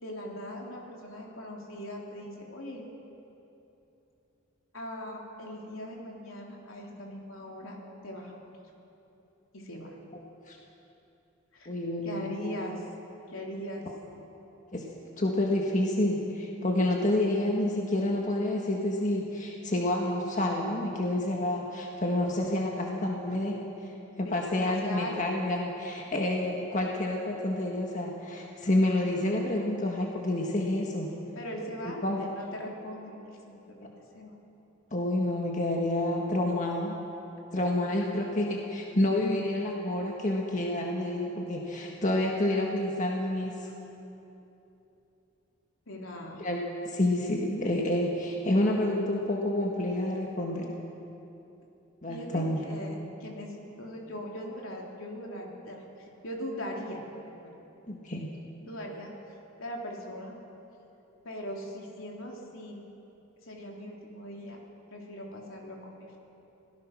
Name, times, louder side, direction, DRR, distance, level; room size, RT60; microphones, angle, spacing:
voice 1, 0.0-2.8 4.7-7.8 8.0-8.4 9.5-9.9 11.5-11.7 12.0-12.8 13.3-13.9 24.2-25.4 31.4-33.2 33.5-33.9 34.2-34.3 45.9-46.4 52.1-57.0 57.4-57.5 58.6-59.1 59.6-60.3 61.2-62.8 63.4-64.6 64.9-66.2, equal, 75° left, -1 dB, 3.5 m, -40 dB
voice 2, 11.6-12.3 14.7-14.9 15.2-23.6 24.2-31.2 32.0-32.2 34.9-37.0 37.5-43.7 46.4-46.6 46.8-50.7 52.0-52.6 57.9-58.3, left 1 dB, 35° left, 0 dB, 1.7 m, -28 dB
26.0 x 17.5 x 6.1 m, 3.0 s
head